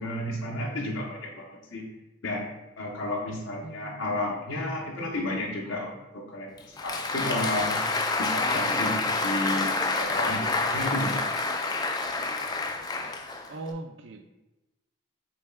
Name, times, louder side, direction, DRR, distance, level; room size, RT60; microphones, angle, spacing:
voice 1, 0.0-1.8 2.2-7.8 8.2-11.4, left 1 dB, 85° left, -2 dB, 0.8 m, -32 dB
voice 2, 3.6-4.1 13.5-14.2, right 2 dB, 70° right, 5 dB, 0.4 m, -39 dB
Applause, 6.6-13.7, left 3 dB, 20° left, 0.3 m, -28 dB
6.9 x 3.2 x 2.2 m, 1.0 s
head